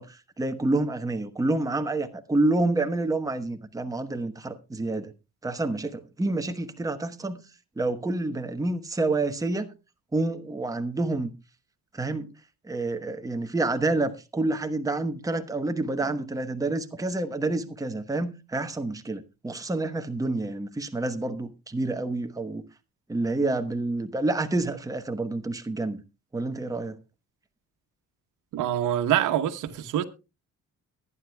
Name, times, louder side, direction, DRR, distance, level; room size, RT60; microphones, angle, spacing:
voice 1, 0.0-5.1 5.4-7.4 7.8-9.7 10.1-11.3 11.9-12.3 12.7-22.6 23.1-26.0 26.3-27.0, right 2 dB, 10° right, 1.1 m, -28 dB
voice 2, 28.5-30.0, right 11 dB, 85° right, 1.1 m, -25 dB
22.5 x 9.6 x 2.3 m
cardioid pair, 90°, 30 cm